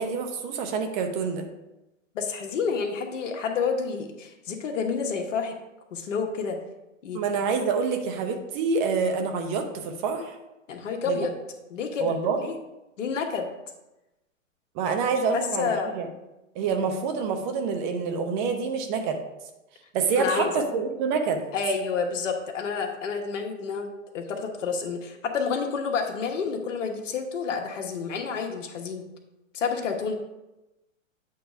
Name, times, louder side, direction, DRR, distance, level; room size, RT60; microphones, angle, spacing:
voice 1, 0.0-1.5 7.1-10.3 11.1-11.3 12.0-12.4 14.7-16.1 16.5-19.2 19.9-21.5, right 5 dB, 35° right, 5 dB, 0.9 m, -27 dB
voice 2, 2.1-5.6 5.9-6.6 7.0-7.2 10.7-11.3 11.7-12.6 13.0-13.5 15.3-15.9 20.2-20.6 21.5-23.9 24.1-29.0 29.5-30.1, left 5 dB, 70° left, 3 dB, 1.3 m, -29 dB
8.3 x 3.2 x 5.0 m, 0.97 s
hypercardioid pair, 130°, 39 cm